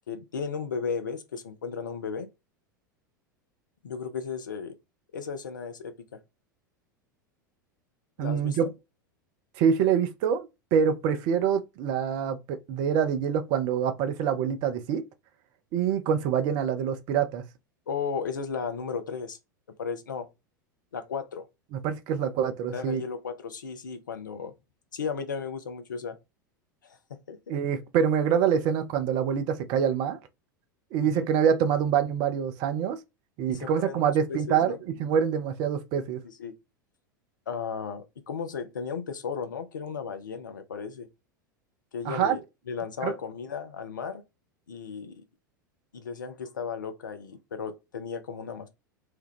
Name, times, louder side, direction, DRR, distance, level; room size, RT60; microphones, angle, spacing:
voice 1, 0.1-2.3 3.8-4.8 5.1-6.2 8.2-8.6 17.9-19.4 19.8-20.3 20.9-21.5 22.7-24.5 24.9-26.2 26.8-27.6 31.0-31.2 33.5-34.8 36.4-36.5 37.5-41.1 41.9-42.4 42.7-44.2 44.7-45.1 45.9-48.7, left 6 dB, 70° left, 0.5 m, -35 dB
voice 2, 8.2-8.7 9.6-15.0 15.7-17.4 21.7-23.0 27.5-30.2 30.9-33.0 33.4-36.2 42.0-42.4 43.0-43.2, right 8 dB, 40° right, 0.5 m, -25 dB
2.8 x 2.2 x 3.4 m
figure-of-eight pair, 85°, 11 cm